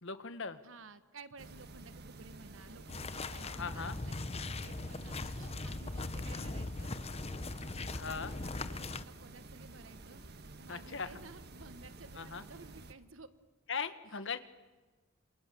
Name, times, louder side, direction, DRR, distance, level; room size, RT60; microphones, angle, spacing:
voice 1, 0.0-0.6 3.4-4.0 7.9-8.3 10.7-11.2 12.1-12.4 13.7-14.4, left 5 dB, 60° left, 11 dB, 1.6 m, -39 dB
voice 2, 0.6-7.0 7.8-13.3, right 3 dB, 65° right, 12 dB, 1.3 m, -55 dB
sound 1, 1.4-12.9, right 2 dB, 50° right, 1.5 m, -51 dB
sound 2, 2.9-9.0, left 2 dB, 30° left, 0.8 m, -40 dB
28.0 x 27.5 x 7.0 m, 1.2 s
head